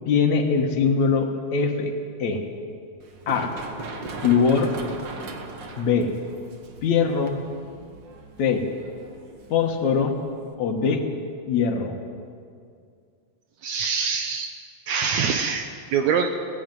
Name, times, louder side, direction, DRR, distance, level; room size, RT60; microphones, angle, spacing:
voice 1, 0.1-2.4 3.3-3.5 4.2-4.7 5.8-6.2 6.8-7.4 8.4-8.7 9.5-10.2 10.6-11.0 11.5-12.0, left 5 dB, 65° left, 4 dB, 2.7 m, -22 dB
Run, 3.0-10.5, right 3 dB, 45° right, 1.6 m, -39 dB
voice 2, 13.6-14.5 14.9-16.3, right 6 dB, 70° right, 6 dB, 2.1 m, -24 dB
18.5 x 15.5 x 9.2 m, 2.2 s
omnidirectional pair, 3.6 m